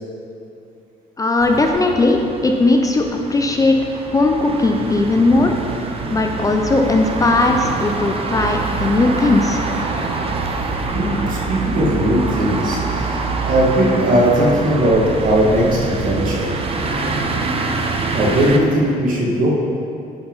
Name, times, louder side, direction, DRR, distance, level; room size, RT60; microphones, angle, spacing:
voice 1, 1.2-3.8 4.1-5.5 6.1-9.6, left 2 dB, 20° left, 3 dB, 0.6 m, -17 dB
sound 1, 1.4-18.6, right 3 dB, 35° right, 0.8 m, -25 dB
voice 2, 10.9-16.5 18.1-19.5, right 1 dB, 55° right, -4 dB, 2.0 m, -18 dB
9.8 x 5.8 x 4.0 m, 2.7 s
cardioid pair, 110°, 17 cm